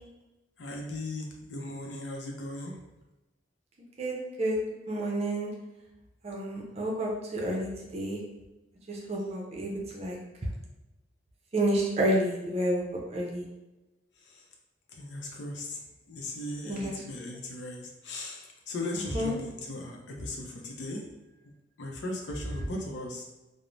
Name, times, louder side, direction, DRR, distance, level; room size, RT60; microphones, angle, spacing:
voice 1, 0.6-2.8 14.2-14.5 14.9-15.8 16.1-21.1 21.8-23.3, left 1 dB, 75° left, 1 dB, 0.5 m, -38 dB
voice 2, 4.0-4.6 4.9-5.5 6.2-8.2 8.9-10.2 11.5-13.5 16.6-16.9 18.9-19.3, right 1 dB, 35° right, -2 dB, 0.5 m, -30 dB
3.1 x 2.0 x 2.5 m, 1.0 s
head